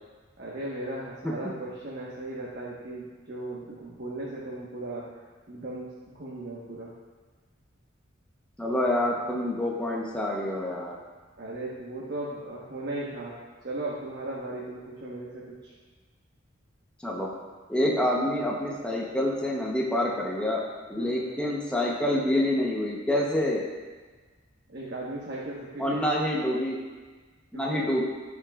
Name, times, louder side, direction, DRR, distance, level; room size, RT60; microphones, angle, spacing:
voice 1, 0.4-6.9 11.4-13.4 13.6-15.7 21.0-21.4 24.7-26.2 27.5-27.9, right 2 dB, 55° right, -5 dB, 1.3 m, -37 dB
voice 2, 8.6-11.0 17.0-17.3 17.7-20.6 20.9-23.6 25.8-26.8 27.5-28.1, left 1 dB, 5° left, -4 dB, 0.9 m, -27 dB
15.5 x 5.9 x 2.4 m, 1.4 s
head